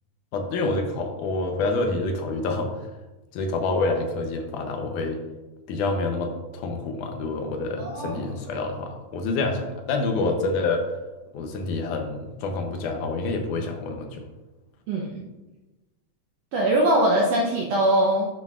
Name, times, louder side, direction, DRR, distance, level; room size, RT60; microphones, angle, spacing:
voice 1, 0.3-2.7 3.3-5.2 5.7-10.8 11.3-14.2, left 3 dB, 75° left, 4 dB, 2.2 m, -27 dB
voice 2, 7.8-8.2 14.9-15.2 16.5-18.3, right 1 dB, 75° right, -2 dB, 1.5 m, -22 dB
11.0 x 6.3 x 2.4 m, 1.1 s
omnidirectional pair, 3.8 m